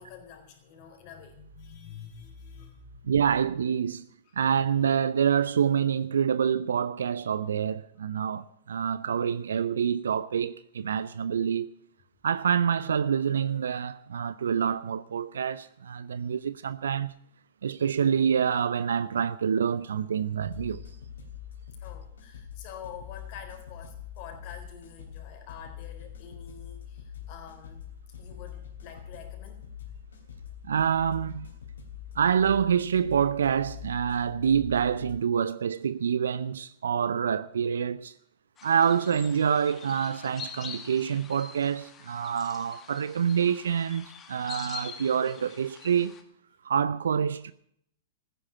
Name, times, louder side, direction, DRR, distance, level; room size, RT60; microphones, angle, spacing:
voice 1, 0.0-3.0 4.2-4.3 21.8-27.8 28.2-29.7, left 7 dB, 45° left, 4.1 m, -47 dB
voice 2, 3.0-4.1 4.4-11.7 12.2-17.1 17.6-20.8 30.6-31.5 32.2-38.1 38.6-46.2 46.6-47.5, right 7 dB, 75° right, 0.6 m, -27 dB
sound 1, 20.4-35.1, left 9 dB, 70° left, 3.4 m, -44 dB
sound 2, 38.6-46.2, left 6 dB, 25° left, 2.1 m, -45 dB
14.5 x 10.0 x 7.5 m
figure-of-eight pair, 105°, 0 cm